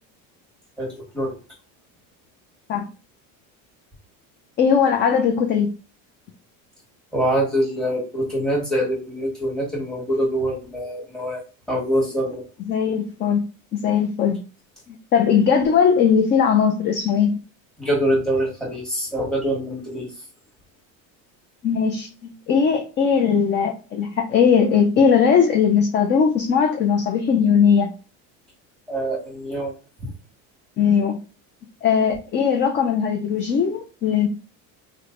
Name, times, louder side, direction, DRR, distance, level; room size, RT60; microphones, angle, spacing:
voice 1, 0.8-1.4 7.1-11.4 11.7-12.4 17.8-20.1 28.9-29.7 30.0-30.1, right 1 dB, ahead, 1.4 m, -24 dB
voice 2, 4.6-5.7 12.7-13.4 13.7-14.4 14.9-17.4 21.6-27.9 30.8-31.2 31.8-34.3, left 7 dB, 30° left, 0.4 m, -19 dB
3.1 x 2.2 x 3.7 m
cardioid pair, 145°, 40 cm